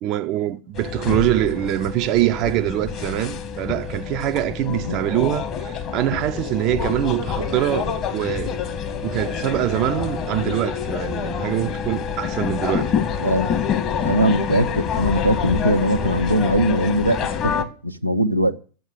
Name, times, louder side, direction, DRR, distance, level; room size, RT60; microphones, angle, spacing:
voice 1, 0.0-8.5 9.0-12.9, right 14 dB, 40° right, 0.7 m, -24 dB
sound 1, 0.7-17.6, left 7 dB, 35° left, 1.8 m, -27 dB
voice 2, 4.7-5.0 13.2-13.5 14.0-18.5, right 1 dB, 90° right, 0.9 m, -21 dB
13.0 x 8.0 x 6.9 m
figure-of-eight pair, 90°, 0 cm